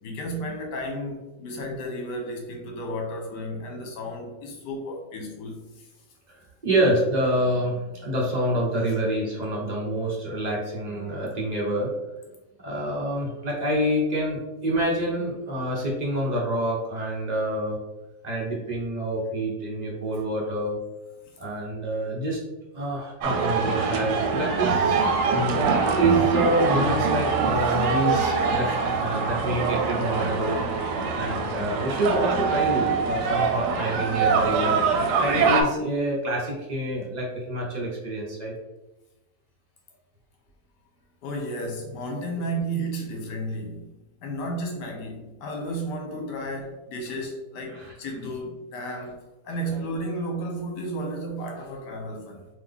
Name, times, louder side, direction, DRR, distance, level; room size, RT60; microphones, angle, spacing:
voice 1, 0.0-5.9 21.3-21.4 41.2-43.9 44.2-52.5, right 1 dB, 70° left, 1 dB, 1.5 m, -33 dB
voice 2, 6.6-11.9 12.6-17.8 18.2-20.8 21.4-22.4 22.7-25.0 25.5-28.7 29.0-30.6 31.2-38.5 47.7-47.9 49.7-49.8, right 1 dB, 40° right, -3 dB, 0.6 m, -27 dB
sound 1, 23.2-35.6, right 5 dB, 75° right, 1.2 m, -24 dB
3.9 x 3.0 x 3.5 m, 1.0 s
omnidirectional pair, 2.0 m